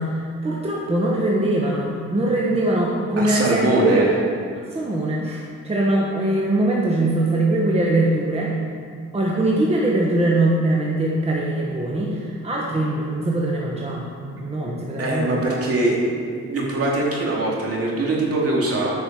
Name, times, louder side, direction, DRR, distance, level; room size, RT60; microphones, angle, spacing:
voice 1, 0.0-4.1 4.7-8.6 9.1-14.0 14.4-15.6, right 1 dB, 20° right, -3 dB, 1.2 m, -22 dB
voice 2, 3.2-4.1 15.0-16.0 16.3-18.9, right 2 dB, 50° right, -3 dB, 2.6 m, -22 dB
9.4 x 5.4 x 6.0 m, 2.1 s
cardioid pair, 90°, 30 cm